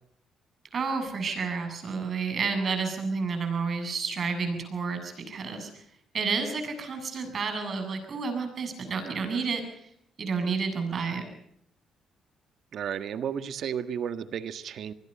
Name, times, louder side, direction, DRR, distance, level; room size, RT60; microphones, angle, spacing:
voice 1, 0.7-5.8 6.1-9.6 10.2-11.3, right 5 dB, 50° right, 6 dB, 7.7 m, -30 dB
voice 2, 12.7-14.9, right 8 dB, 65° right, 11 dB, 1.6 m, -33 dB
25.5 x 21.0 x 5.6 m, 0.72 s
cardioid pair, 90°, 0 cm